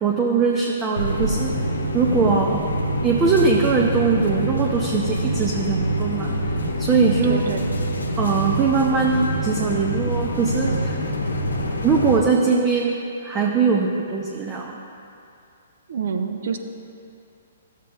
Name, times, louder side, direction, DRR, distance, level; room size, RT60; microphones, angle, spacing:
voice 1, 0.0-1.6 1.9-2.7 3.0-6.4 6.8-7.4 8.2-11.0 11.8-14.8, right 5 dB, 20° right, -1 dB, 0.7 m, -21 dB
sound 1, 1.0-12.2, equal, 80° left, 0.8 m, -25 dB
voice 2, 7.2-7.7 15.9-16.6, right 6 dB, 60° right, 6 dB, 0.6 m, -27 dB
13.5 x 7.4 x 2.5 m, 2.6 s
figure-of-eight pair, 125°, 0 cm